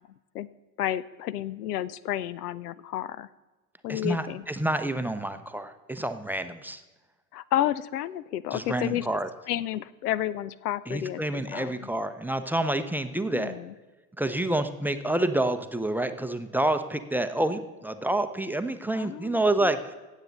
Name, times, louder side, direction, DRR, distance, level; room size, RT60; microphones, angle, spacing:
voice 1, 0.8-3.3 3.8-4.4 7.3-9.1 9.5-11.8 13.2-13.7 18.9-19.7, left 12 dB, 85° left, 20 dB, 0.5 m, -31 dB
voice 2, 3.9-6.8 8.5-9.3 10.9-13.6 14.2-19.9, right 1 dB, 5° right, 9 dB, 0.6 m, -28 dB
17.0 x 7.3 x 4.0 m, 1.2 s
hypercardioid pair, 70°, 45 cm